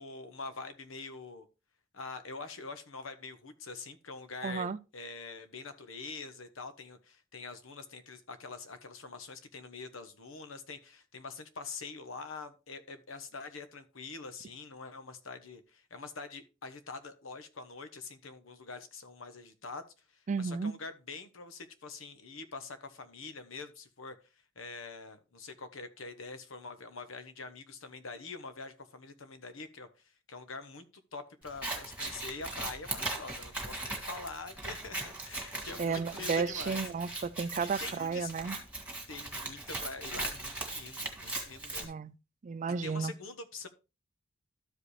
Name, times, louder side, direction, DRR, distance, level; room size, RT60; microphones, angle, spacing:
voice 1, 0.0-1.5 1.9-19.9 20.1-24.2 24.6-30.8 31.1-36.9 37.6-38.3 39.1-41.9 42.8-43.7, left 4 dB, 80° left, 1.1 m, -45 dB
voice 2, 4.4-4.8 20.3-20.7 35.8-38.6 41.8-42.1 42.4-43.1, right 5 dB, 40° right, 0.4 m, -33 dB
Scissors, 31.5-41.9, right 2 dB, 5° right, 1.9 m, -39 dB
13.0 x 5.0 x 3.3 m
head